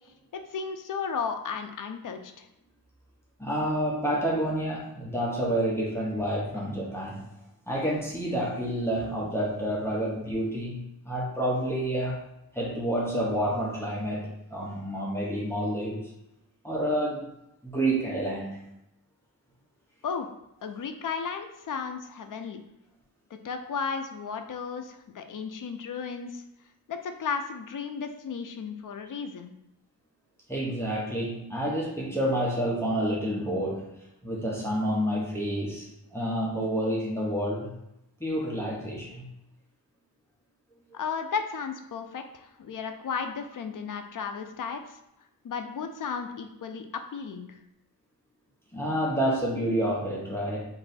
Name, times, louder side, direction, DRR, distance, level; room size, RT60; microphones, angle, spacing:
voice 1, 0.3-2.5 20.0-20.3 20.6-22.6 23.3-26.4 26.9-29.5 40.9-45.0 45.4-47.6, left 6 dB, 55° left, 6 dB, 0.5 m, -34 dB
voice 2, 3.4-7.3 7.7-12.2 12.5-16.0 16.6-17.3 17.6-18.6 30.5-33.9 34.2-35.9 36.1-37.7 38.2-39.3 48.7-50.6, right 1 dB, 5° left, -5 dB, 0.8 m, -29 dB
3.1 x 2.7 x 4.0 m, 0.86 s
wide cardioid pair, 95°, 38 cm